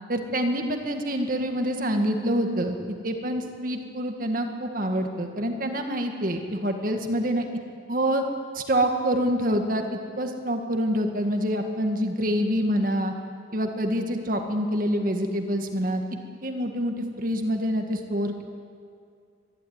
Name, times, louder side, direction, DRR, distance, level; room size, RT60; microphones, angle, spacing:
voice 1, 0.1-2.8 3.0-7.4 7.9-8.2 8.5-9.8 10.2-13.1 13.5-16.0 16.4-18.4, equal, 45° right, 4 dB, 1.8 m, -26 dB
23.5 x 12.0 x 9.6 m, 2.3 s
head